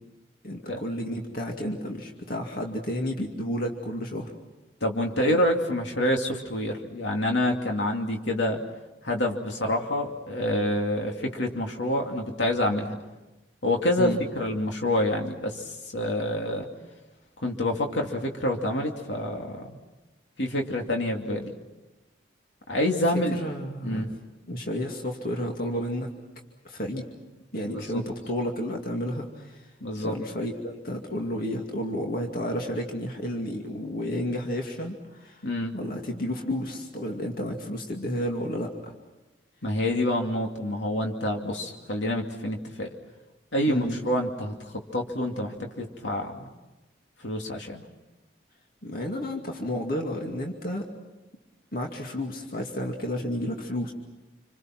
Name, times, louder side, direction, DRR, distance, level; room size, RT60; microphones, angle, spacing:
voice 1, 0.4-4.3 14.0-14.2 23.3-24.0 24.5-26.1 26.6-27.1 27.5-29.7 30.0-35.4 35.7-38.9 43.7-44.0 48.8-50.9 51.7-53.9, equal, 50° left, 1 dB, 2.4 m, -31 dB
voice 2, 4.8-8.6 9.0-13.0 13.6-16.7 17.4-19.8 20.4-21.5 22.7-23.4 23.8-24.1 27.6-28.0 29.8-30.1 35.4-35.8 39.6-42.9 43.5-46.5 47.2-47.8, left 1 dB, 80° left, 1 dB, 2.6 m, -27 dB
28.0 x 26.5 x 6.1 m, 1.1 s
head